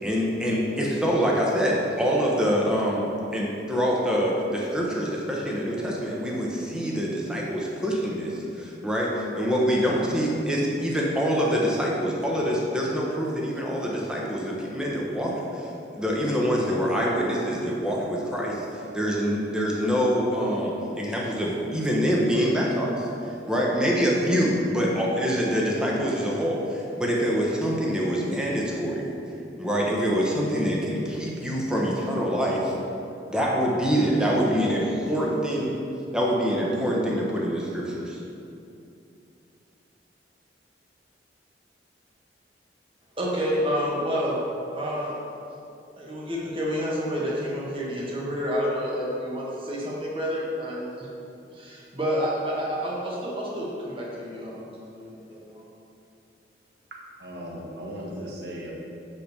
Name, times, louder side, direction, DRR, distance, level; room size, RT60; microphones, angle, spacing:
voice 1, 0.0-15.7 16.0-23.1 23.5-29.1 29.6-32.7 33.3-35.7 36.1-38.2, equal, 5° right, -4 dB, 1.1 m, -25 dB
voice 2, 43.2-44.4 44.7-45.2 46.0-51.1 51.5-55.6, equal, 30° right, -5 dB, 1.4 m, -29 dB
voice 3, 56.9-58.7, equal, 65° right, -2 dB, 1.4 m, -37 dB
5.8 x 5.1 x 6.6 m, 2.7 s
head